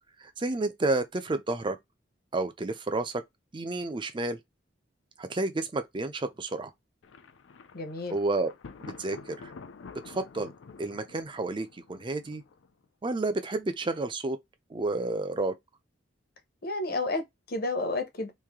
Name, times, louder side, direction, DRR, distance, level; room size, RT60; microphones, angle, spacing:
voice 1, 0.2-1.8 2.3-3.2 3.5-4.4 5.2-6.7 8.1-8.5 8.9-9.5 10.1-10.5 10.8-12.4 13.0-14.4 14.7-15.5, right 2 dB, 25° right, 0.5 m, -30 dB
Thunder, 7.0-12.8, left 4 dB, 85° left, 0.5 m, -48 dB
voice 2, 7.7-8.2 16.6-18.3, left 2 dB, 55° left, 0.8 m, -31 dB
3.2 x 2.6 x 3.6 m
head